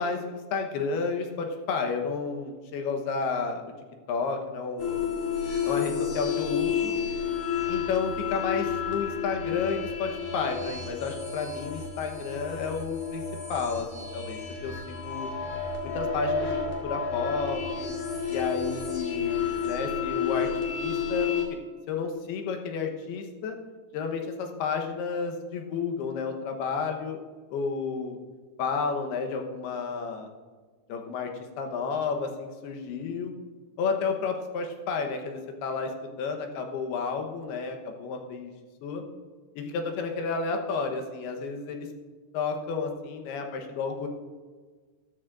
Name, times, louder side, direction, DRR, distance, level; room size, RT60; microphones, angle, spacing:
voice 1, 0.0-3.7 4.1-5.1 5.6-6.9 7.7-13.2 13.5-15.3 15.8-17.9 18.3-21.3 21.9-23.6 23.9-27.2 27.5-28.2 28.6-30.3 30.9-31.3 31.6-33.3 33.8-35.9 36.2-38.5 38.8-39.0 39.6-41.9 42.3-44.1, left 5 dB, 80° left, 4 dB, 3.0 m, -31 dB
sound 1, 4.8-21.5, left 6 dB, 50° left, 3.1 m, -31 dB
14.5 x 13.5 x 2.5 m, 1.4 s
omnidirectional pair, 4.6 m